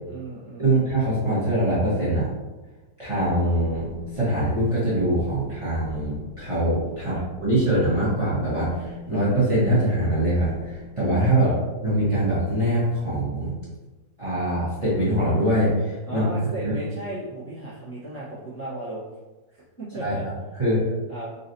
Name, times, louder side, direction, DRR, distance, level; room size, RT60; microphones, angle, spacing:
voice 1, 0.1-0.7 7.0-7.2 11.3-11.5 16.1-19.0 19.8-20.2 21.1-21.3, right 2 dB, 10° left, -10 dB, 0.9 m, -34 dB
voice 2, 0.6-2.3 3.0-3.9 4.1-11.5 11.8-13.5 14.2-16.3 16.6-16.7 20.0-20.1 20.6-20.8, right 1 dB, 20° right, -10 dB, 1.1 m, -23 dB
sound 1, 3.1-11.0, left 3 dB, 85° left, 1.3 m, -42 dB
3.9 x 3.1 x 2.7 m, 1.2 s
omnidirectional pair, 1.9 m